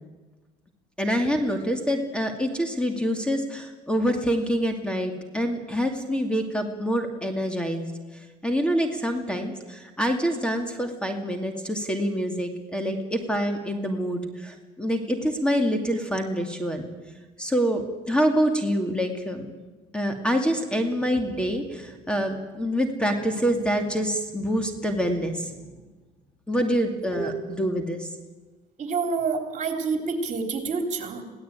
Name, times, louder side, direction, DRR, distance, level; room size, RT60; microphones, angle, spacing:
voice 1, 1.0-16.9 17.4-19.6 19.9-25.8 26.5-28.1, equal, 5° left, 4 dB, 2.4 m, -26 dB
voice 2, 28.8-31.2, right 4 dB, 45° right, 5 dB, 3.7 m, -28 dB
22.0 x 17.0 x 9.0 m, 1.3 s
cardioid pair, 110°, 17 cm